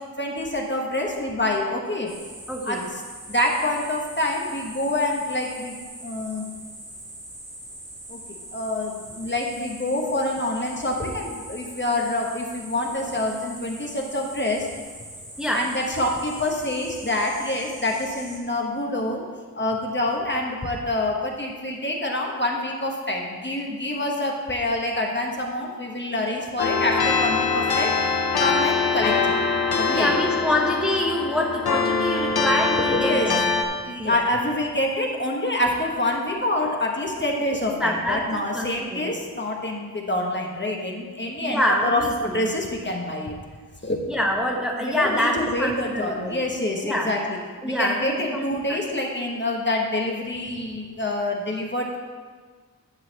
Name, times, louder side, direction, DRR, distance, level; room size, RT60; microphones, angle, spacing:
voice 1, 0.2-2.1 2.6-3.0 3.3-6.5 8.1-14.7 15.5-19.2 19.5-27.9 28.4-29.4 29.8-30.1 32.9-33.3 33.8-43.3 43.8-44.0 44.8-47.4 47.6-52.0, left 1 dB, 30° left, 0 dB, 1.1 m, -26 dB
sound 1, 2.1-18.4, right 1 dB, 20° right, 2.5 m, -42 dB
voice 2, 2.5-2.9 15.4-15.7 29.9-33.4 34.0-34.2 37.8-39.2 41.4-42.4 44.1-46.4 46.8-47.1 47.6-48.8, equal, ahead, -1 dB, 1.1 m, -26 dB
sound 2, 26.6-33.6, left 4 dB, 85° left, 0.8 m, -23 dB
11.0 x 4.0 x 6.5 m, 1.5 s
wide cardioid pair, 95°, 37 cm